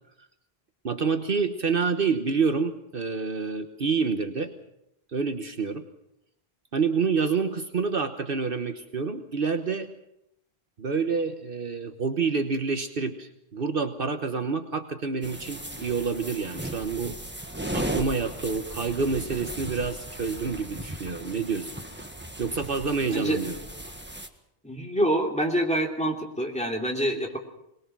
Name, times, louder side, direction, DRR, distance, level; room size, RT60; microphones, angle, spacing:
voice 1, 0.8-4.5 5.1-5.8 6.7-9.9 10.8-17.2 17.7-21.7 22.4-23.6, right 5 dB, 60° right, 7 dB, 1.3 m, -28 dB
sound 1, 15.2-24.3, right 1 dB, 10° right, 1.5 m, -36 dB
voice 2, 24.6-27.4, right 1 dB, 5° left, 0 dB, 3.0 m, -26 dB
22.5 x 20.0 x 6.1 m, 0.81 s
omnidirectional pair, 1.1 m